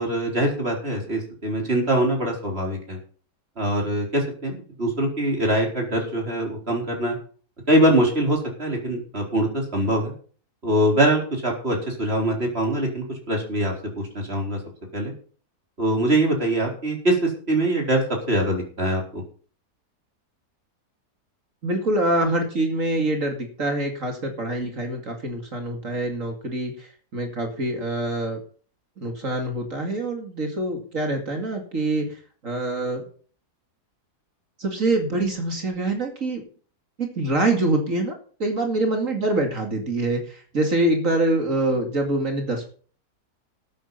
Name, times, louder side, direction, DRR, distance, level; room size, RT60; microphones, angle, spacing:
voice 1, 0.0-3.0 3.6-7.2 7.7-10.1 10.6-14.6 14.9-15.1 15.8-18.0 18.3-19.2, right 1 dB, 40° right, 1 dB, 4.6 m, -23 dB
voice 2, 21.6-28.4 29.0-33.0 34.6-36.4 37.0-38.1 38.4-42.7, right 2 dB, 55° right, 4 dB, 2.7 m, -25 dB
12.5 x 9.4 x 5.7 m, 0.42 s
omnidirectional pair, 1.7 m